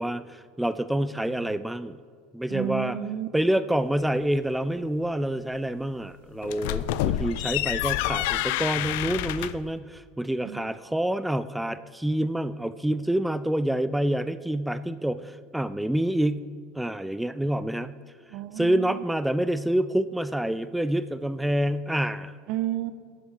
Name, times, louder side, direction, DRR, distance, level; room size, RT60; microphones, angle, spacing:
voice 1, 0.0-2.0 2.3-3.0 3.3-16.4 16.7-17.9 18.6-22.3, right 1 dB, 5° right, 13 dB, 0.4 m, -27 dB
voice 2, 2.5-3.3 10.4-10.6 18.3-19.0 22.5-22.9, right 11 dB, 55° right, 13 dB, 0.7 m, -31 dB
sound 1, 6.4-9.7, left 14 dB, 65° left, 0.4 m, -28 dB
13.0 x 8.2 x 4.9 m, 2.1 s
figure-of-eight pair, 75°, 0 cm